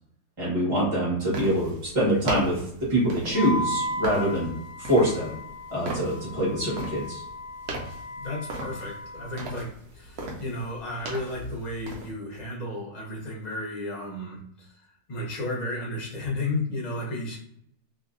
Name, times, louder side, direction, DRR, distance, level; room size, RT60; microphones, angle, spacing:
voice 1, 0.4-4.5 4.9-5.3 5.7-7.2, equal, 20° right, -7 dB, 1.3 m, -25 dB
sound 1, 1.3-12.1, right 2 dB, 75° right, 1.2 m, -38 dB
Wind instrument woodwind instrument, 3.3-9.5, equal, 70° left, 0.9 m, -36 dB
voice 2, 8.2-14.7 15.1-17.4, left 2 dB, 40° left, -2 dB, 0.7 m, -33 dB
2.9 x 2.7 x 2.5 m, 0.72 s
omnidirectional pair, 1.7 m